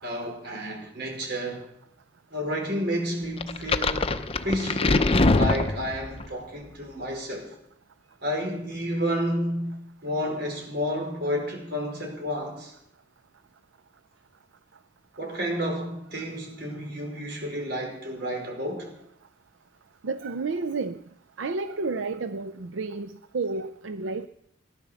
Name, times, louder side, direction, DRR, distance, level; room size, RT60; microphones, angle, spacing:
voice 1, 0.0-1.7 2.3-4.2 4.4-7.5 8.2-9.8 10.0-12.7 15.2-18.9, equal, 60° right, 5.1 m, -31 dB
sound 1, 3.4-6.3, left 2 dB, 30° left, 0.7 m, -23 dB
voice 2, 20.0-21.0 21.4-24.3, right 3 dB, 85° right, 0.6 m, -31 dB
17.5 x 10.5 x 7.0 m
head